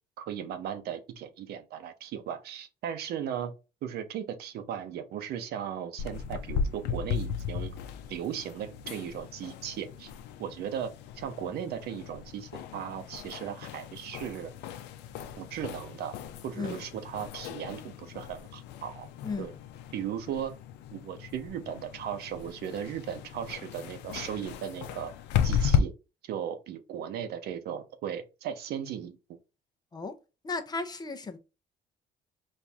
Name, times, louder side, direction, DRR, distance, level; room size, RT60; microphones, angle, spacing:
voice 1, 0.2-3.5 3.8-7.7 8.1-10.1 10.4-14.5 15.4-16.1 16.4-19.1 19.4-19.5 19.9-20.5 20.9-25.1 25.4-25.9 26.2-29.2, right 9 dB, 70° right, 0.8 m, -37 dB
sound 1, 6.0-25.8, left 8 dB, 85° left, 0.5 m, -35 dB
voice 2, 19.2-19.6 29.9-30.1 30.4-31.4, left 4 dB, 25° left, 0.7 m, -35 dB
4.4 x 2.6 x 3.5 m
cardioid pair, 110°, 17 cm